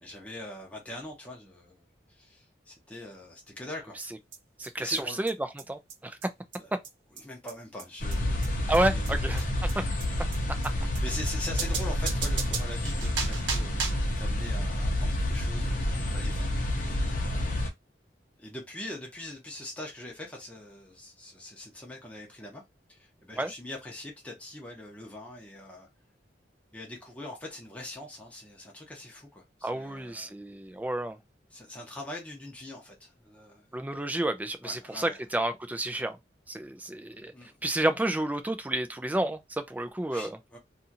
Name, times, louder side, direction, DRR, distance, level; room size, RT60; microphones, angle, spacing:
voice 1, 0.0-4.0 4.8-5.2 6.6-6.7 7.1-9.5 11.0-17.6 18.4-22.6 22.9-25.9 26.7-30.3 31.5-33.7 34.6-35.2 37.3-37.5 40.1-40.6, left 1 dB, 5° left, 0.7 m, -43 dB
sound 1, 4.0-4.1 4.3-4.4 4.6-4.7 5.0-5.1 5.3-5.4 5.6-5.7 5.9-6.0 6.2-6.3 6.5-6.6 6.8-6.9 7.2-7.3 7.5-7.6 7.8-7.9 8.1-8.2 8.4-8.5 8.7-8.8 9.1-9.2 9.4-9.5 9.7-9.8 10.0-10.1 10.3-10.4 10.6-10.7 11.0-11.1 11.3-11.4 11.6-14.1, right 5 dB, 85° right, 0.8 m, -35 dB
voice 2, 4.6-5.3 5.7-6.2 8.7-9.4 23.4-23.5 29.6-31.2 33.7-36.2 36.5-37.3 37.6-40.3, right 1 dB, 10° right, 0.3 m, -30 dB
sound 2, 8.0-17.7, left 1 dB, 45° left, 0.7 m, -29 dB
2.7 x 2.4 x 2.7 m
head